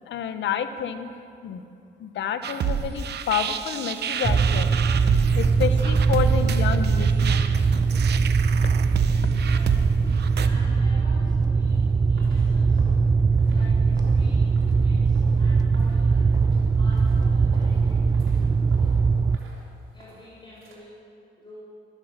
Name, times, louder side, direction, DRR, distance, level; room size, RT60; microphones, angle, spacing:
voice 1, 0.1-1.2 1.4-1.6 2.0-4.7 5.4-7.4 9.2-9.3, left 8 dB, 70° left, 10 dB, 0.9 m, -29 dB
sound 1, 2.4-10.5, right 7 dB, 60° right, 0.8 m, -30 dB
sound 2, 4.2-19.4, right 5 dB, 20° right, 0.4 m, -21 dB
voice 2, 9.3-9.7 10.4-12.8 13.4-16.3 16.8-18.7 19.9-21.0 21.4-21.6, left 1 dB, 25° left, -6 dB, 4.1 m, -48 dB
sound 3, 11.6-20.7, right 2 dB, 80° right, 3.2 m, -51 dB
13.5 x 11.0 x 6.6 m, 2.5 s
cardioid pair, 90°, 20 cm